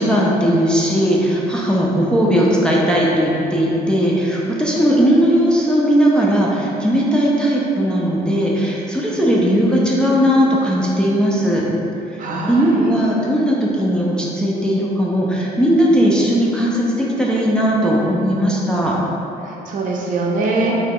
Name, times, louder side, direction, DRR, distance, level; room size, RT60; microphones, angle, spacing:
voice 1, 0.0-11.6 12.1-12.2 12.5-19.0, equal, 5° left, -5 dB, 0.4 m, -17 dB
voice 2, 12.2-12.9 19.4-20.7, right 3 dB, 50° right, -2 dB, 0.5 m, -22 dB
2.9 x 2.3 x 3.4 m, 2.9 s
cardioid pair, 110°, 17 cm